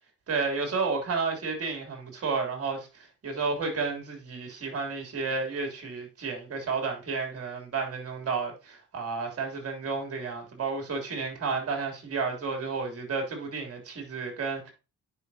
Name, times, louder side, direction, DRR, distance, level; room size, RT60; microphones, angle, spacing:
voice 1, 0.3-2.9 3.2-14.7, right 4 dB, 50° right, 3.2 m, -31 dB
9.8 x 5.3 x 2.8 m
cardioid pair, 90°, 30 cm